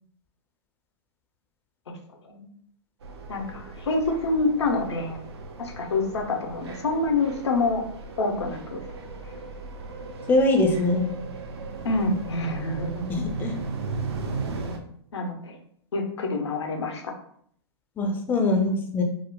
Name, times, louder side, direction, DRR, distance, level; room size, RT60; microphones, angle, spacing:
sound 1, 3.0-14.8, right 3 dB, 70° right, 0.5 m, -36 dB
voice 1, 3.3-5.2 5.6-7.8 8.2-8.8 11.8-13.1 15.1-15.6 15.9-17.1, left 3 dB, 80° left, 4 dB, 0.6 m, -27 dB
voice 2, 10.3-11.1 13.1-13.6 18.0-19.0, left 2 dB, 15° left, 3 dB, 0.4 m, -22 dB
3.6 x 2.0 x 2.2 m, 0.64 s
hypercardioid pair, 125°, 14 cm